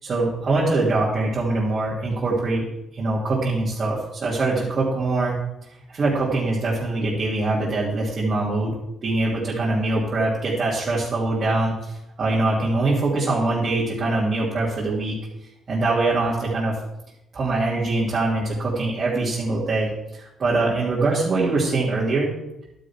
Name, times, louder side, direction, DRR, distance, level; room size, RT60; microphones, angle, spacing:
voice 1, 0.0-2.6 2.9-5.4 5.9-8.7 9.0-15.1 15.7-16.7 17.3-22.3, right 2 dB, 45° right, -7 dB, 3.0 m, -23 dB
12.0 x 9.1 x 3.7 m, 0.87 s
cardioid pair, 90°, 0 cm